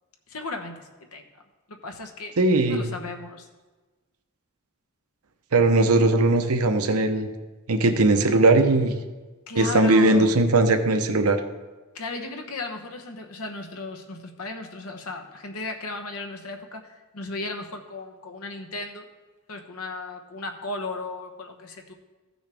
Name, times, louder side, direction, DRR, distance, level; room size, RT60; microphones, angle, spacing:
voice 1, 0.3-1.2 1.7-2.4 2.7-3.5 9.5-10.4 11.9-19.1 19.5-21.9, left 2 dB, 80° left, 5 dB, 1.0 m, -35 dB
voice 2, 2.4-2.9 5.5-7.3 7.7-8.9 9.5-11.4, right 2 dB, 85° right, 7 dB, 0.8 m, -19 dB
15.0 x 6.4 x 3.5 m, 1.3 s
head